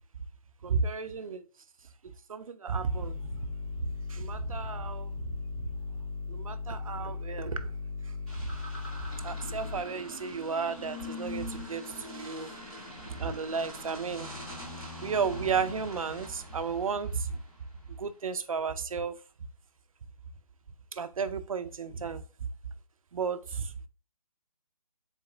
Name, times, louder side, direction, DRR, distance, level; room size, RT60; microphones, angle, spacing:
voice 1, 0.6-1.4 2.3-3.2 3.8-5.3 6.3-7.7 8.4-8.5 9.2-11.8 12.1-12.5 13.2-14.3 15.0-17.4 18.0-19.2 20.9-22.2 23.1-23.7, right 5 dB, 60° right, 0.5 m, -33 dB
sound 1, 2.8-9.8, left 4 dB, 25° left, 1.1 m, -38 dB
sound 2, 8.3-17.8, left 1 dB, 5° left, 0.4 m, -43 dB
4.0 x 3.9 x 2.4 m
figure-of-eight pair, 160°, 20 cm